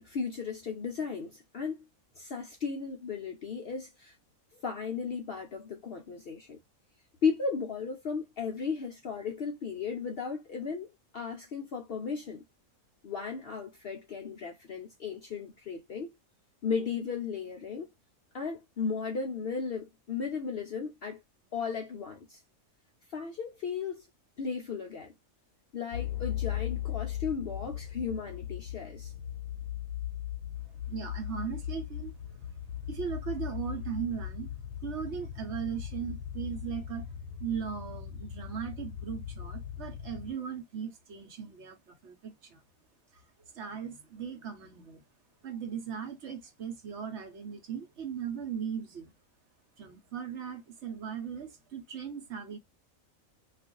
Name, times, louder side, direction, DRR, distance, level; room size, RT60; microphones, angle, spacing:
voice 1, 0.0-1.8 2.2-4.2 4.5-6.6 7.2-10.9 11.1-12.4 13.0-16.1 16.6-17.9 18.3-21.2 21.5-22.4 23.1-24.1 24.4-25.1 25.7-29.1, left 5 dB, 60° left, 0.6 m, -35 dB
sound 1, 25.9-40.3, left 10 dB, 85° left, 1.1 m, -38 dB
voice 2, 30.9-32.4 32.9-34.5 34.8-37.1 37.4-42.6 43.1-45.0 45.4-49.1 49.8-52.6, right 7 dB, 60° right, 1.0 m, -38 dB
2.5 x 2.4 x 3.7 m
omnidirectional pair, 1.5 m